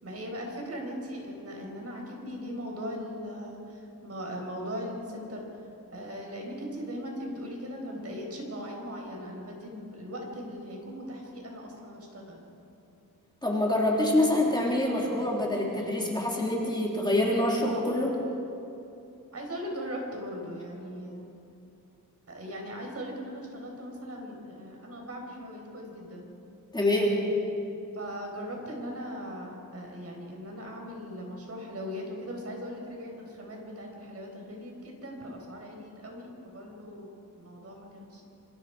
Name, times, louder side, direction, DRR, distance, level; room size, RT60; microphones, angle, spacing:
voice 1, 0.0-5.6 5.9-12.5 19.3-21.2 22.3-26.3 27.9-38.3, equal, 50° right, 0 dB, 5.0 m, -39 dB
voice 2, 13.4-18.2 26.7-27.2, left 1 dB, 15° left, -3 dB, 3.3 m, -26 dB
27.0 x 27.0 x 5.0 m, 2.8 s
wide cardioid pair, 175°, 32 cm